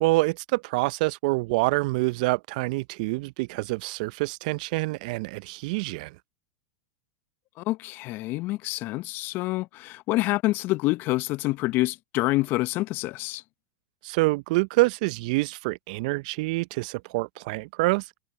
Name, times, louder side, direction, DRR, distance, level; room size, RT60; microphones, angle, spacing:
voice 1, 0.0-6.2 14.0-18.0, right 23 dB, 55° right, 0.6 m, -26 dB
voice 2, 7.6-13.4, left 19 dB, 45° left, 0.7 m, -27 dB
hypercardioid pair, 100°, 5 cm